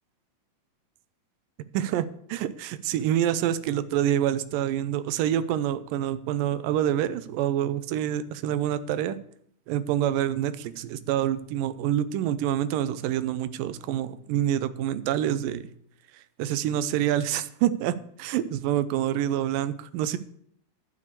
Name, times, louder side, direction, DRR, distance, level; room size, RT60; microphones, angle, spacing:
voice 1, 1.7-9.2 9.7-15.6 16.4-20.2, right 11 dB, 85° right, 13 dB, 2.4 m, -27 dB
12.0 x 6.8 x 6.8 m, 0.66 s
omnidirectional pair, 3.8 m